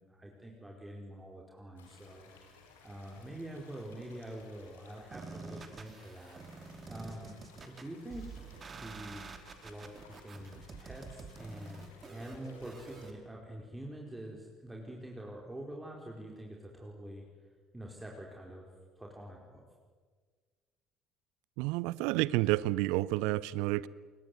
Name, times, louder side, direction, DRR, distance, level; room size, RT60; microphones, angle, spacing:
voice 1, 0.0-7.4 7.7-8.3 8.7-9.3 9.6-17.2 17.7-19.6, right 1 dB, 10° right, -1 dB, 4.8 m, -46 dB
sound 1, 1.8-13.1, left 5 dB, 75° left, 4.4 m, -59 dB
sound 2, 5.1-13.1, right 4 dB, 35° right, 2.9 m, -48 dB
voice 2, 21.6-23.9, right 18 dB, 65° right, 21 dB, 0.7 m, -30 dB
27.5 x 23.0 x 8.1 m, 1.5 s
figure-of-eight pair, 55°, 0 cm